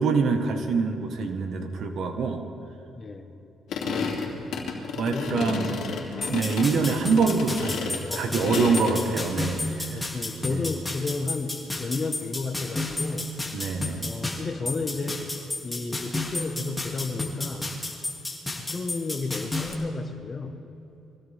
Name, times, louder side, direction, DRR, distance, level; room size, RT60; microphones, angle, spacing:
voice 1, 0.0-2.4 3.9-4.7 5.0-6.0 6.3-10.0 10.5-10.7 13.5-14.1, right 4 dB, 70° right, 5 dB, 1.6 m, -26 dB
voice 2, 3.0-3.3 5.0-6.2 6.7-6.8 8.1-9.0 9.9-13.3 14.0-15.3 15.6-18.1 18.5-20.6, left 3 dB, 35° left, 6 dB, 1.5 m, -33 dB
sound 1, 3.7-9.0, left 5 dB, 75° left, 2.8 m, -31 dB
sound 2, 6.2-19.7, left 2 dB, 10° left, 2.8 m, -32 dB
23.5 x 16.5 x 3.7 m, 2.9 s
cardioid pair, 90°, 0 cm